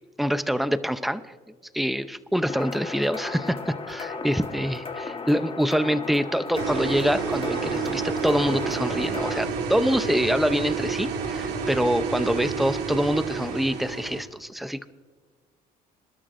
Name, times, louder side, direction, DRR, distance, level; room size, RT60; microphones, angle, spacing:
voice 1, 0.2-1.2 1.7-14.9, equal, ahead, 12 dB, 0.6 m, -25 dB
sound 1, 2.5-9.4, left 4 dB, 35° left, 1.4 m, -35 dB
sound 2, 6.5-14.2, right 5 dB, 85° right, 1.9 m, -29 dB
27.0 x 12.5 x 2.6 m, 1.5 s
cardioid pair, 110°, 17 cm